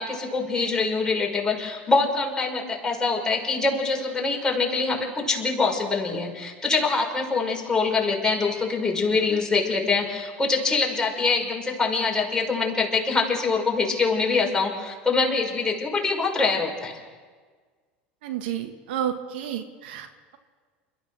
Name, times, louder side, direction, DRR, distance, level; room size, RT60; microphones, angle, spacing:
voice 1, 0.0-17.0, left 4 dB, 10° left, -1 dB, 5.9 m, -24 dB
voice 2, 18.2-20.1, right 10 dB, 70° right, 6 dB, 1.7 m, -30 dB
29.0 x 14.0 x 6.5 m, 1.5 s
hypercardioid pair, 80°, 6 cm